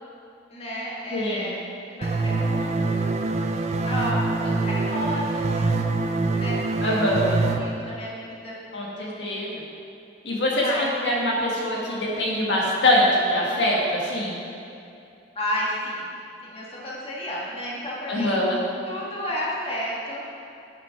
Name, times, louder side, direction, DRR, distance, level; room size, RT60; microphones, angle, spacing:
voice 1, 0.5-1.5 2.0-3.0 3.9-5.5 6.4-7.0 7.6-8.6 10.5-10.9 15.3-16.1 16.4-18.3 18.9-20.2, equal, 30° left, -5 dB, 1.7 m, -31 dB
voice 2, 1.1-1.5 6.8-7.4 8.7-9.6 10.2-14.4 18.1-18.6, left 1 dB, 70° left, -3 dB, 1.5 m, -23 dB
sound 1, 2.0-7.6, right 3 dB, 35° right, 0.5 m, -25 dB
9.1 x 6.1 x 5.8 m, 2.6 s
head